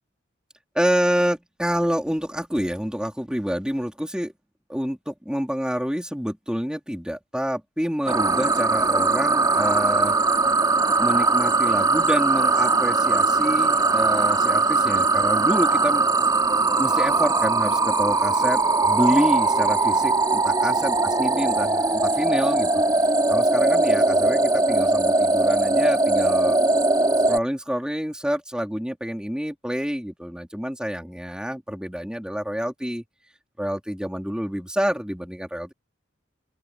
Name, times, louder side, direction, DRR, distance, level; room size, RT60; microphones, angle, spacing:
voice 1, 0.7-4.3 4.7-10.1 11.0-16.1 16.8-22.7 23.3-26.6 27.3-33.0 33.6-35.7, equal, 5° right, 3.5 m, -27 dB
sound 1, 8.1-27.4, right 3 dB, 20° right, 3.0 m, -20 dB
open air
head